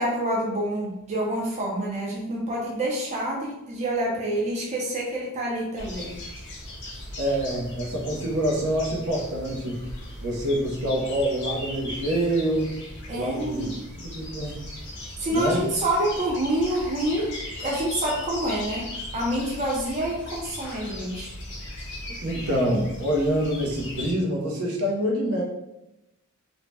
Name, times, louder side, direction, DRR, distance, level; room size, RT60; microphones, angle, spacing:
voice 1, 0.0-6.2 13.1-13.7 15.2-17.3 17.6-21.3, right 1 dB, 30° right, -3 dB, 0.5 m, -27 dB
sound 1, 5.8-24.1, left 1 dB, 55° left, 0.7 m, -38 dB
voice 2, 7.2-9.8 10.2-12.7 13.1-13.7 14.0-14.6 15.3-15.6 22.2-25.4, equal, 70° right, -2 dB, 0.7 m, -26 dB
2.6 x 2.1 x 3.3 m, 0.89 s
head